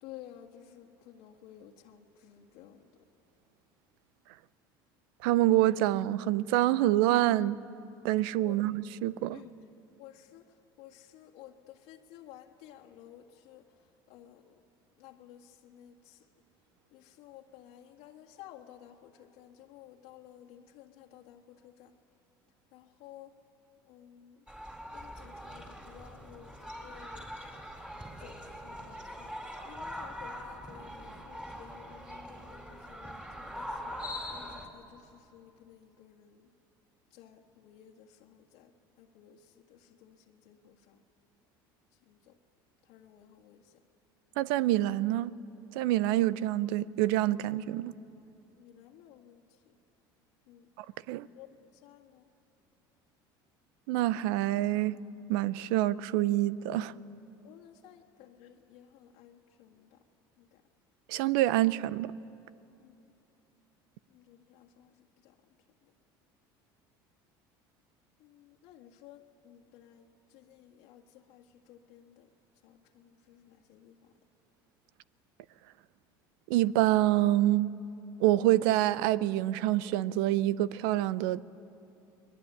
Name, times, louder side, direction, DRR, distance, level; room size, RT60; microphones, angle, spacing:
voice 1, 0.0-2.9 8.4-8.6 9.3-9.5 10.0-14.5 15.0-16.3 16.9-21.9 22.7-23.3 23.9-24.4 24.9-27.5 28.2-29.3 29.6-36.5 37.1-38.7 39.0-41.0 42.1-42.4 42.8-43.7 48.6-49.7 50.5-50.7 51.3-51.5 51.7-52.3 57.4-60.0 60.4-60.6 62.8-62.9 64.1-65.4 65.8-65.9 68.2-72.3 72.6-74.1, left 11 dB, 70° left, 1.9 m, -54 dB
voice 2, 5.2-7.6 8.0-9.4 44.4-45.3 45.7-47.9 51.1-51.3 53.9-55.0 55.3-56.9 61.1-62.1 76.5-77.7 78.2-81.4, right 15 dB, 75° right, 0.7 m, -26 dB
sound 1, 24.5-34.7, equal, 10° right, 4.3 m, -43 dB
23.5 x 21.0 x 9.9 m
hypercardioid pair, 85°, 12 cm